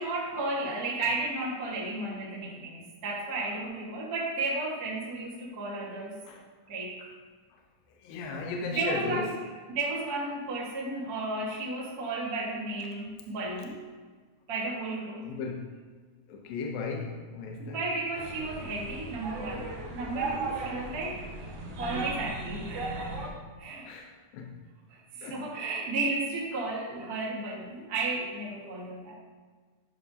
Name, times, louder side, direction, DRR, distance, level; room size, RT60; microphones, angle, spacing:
voice 1, 0.0-6.2 6.7-7.1 8.5-9.3 9.7-13.7 14.5-15.2 17.6-21.5 21.8-23.3 23.6-23.9 24.9-29.1, right 2 dB, 45° right, -5 dB, 1.3 m, -33 dB
voice 2, 8.0-9.5 15.2-15.8 16.3-17.9 23.8-24.7 25.2-25.5, left 4 dB, 80° left, 1 dB, 2.5 m, -36 dB
sound 1, 18.1-23.3, right 3 dB, 60° right, 1.7 m, -36 dB
12.5 x 5.8 x 2.8 m, 1.5 s
omnidirectional pair, 4.1 m